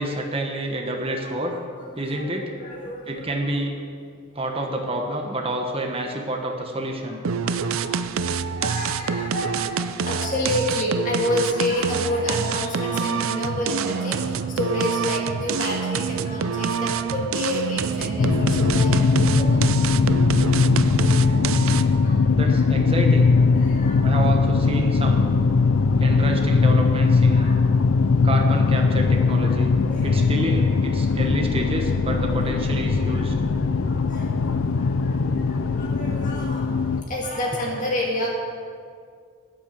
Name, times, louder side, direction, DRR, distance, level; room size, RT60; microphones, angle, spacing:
voice 1, 0.0-1.5 1.9-2.5 3.1-3.8 4.3-7.2 22.3-23.4 24.0-25.4 26.0-27.5 28.2-29.7 30.0-33.3, right 1 dB, 25° right, 2 dB, 1.2 m, -28 dB
voice 2, 1.8-2.2 2.6-3.2 7.4-19.8 20.2-20.4 21.1-22.6 23.4-24.3 24.6-24.9 25.8-26.3 27.3-28.0 29.3-29.6 29.8-30.3 30.7-31.0 32.3-32.4 32.9-36.8 37.1-38.3, left 1 dB, 40° left, -2 dB, 2.1 m, -30 dB
sound 1, 7.2-22.0, right 6 dB, 80° right, 0.5 m, -27 dB
sound 2, 18.2-37.0, left 4 dB, 80° left, 0.5 m, -20 dB
10.5 x 9.4 x 7.5 m, 2.2 s
head